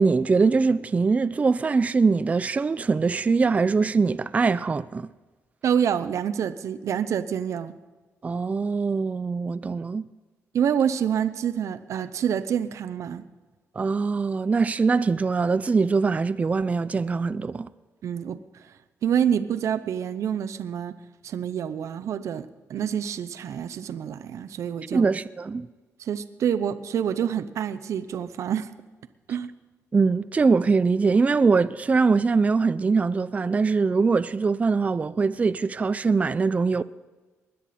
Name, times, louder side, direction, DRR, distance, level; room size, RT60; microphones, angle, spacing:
voice 1, 0.0-5.1 8.2-10.0 13.8-17.7 24.9-25.7 29.9-36.8, right 4 dB, 25° right, 0.4 m, -22 dB
voice 2, 5.6-7.7 10.5-13.2 18.0-21.0 21.2-25.1 26.0-28.7 29.3-29.5, right 8 dB, 70° right, 0.6 m, -27 dB
20.5 x 10.0 x 4.2 m
cardioid pair, 110°, 5 cm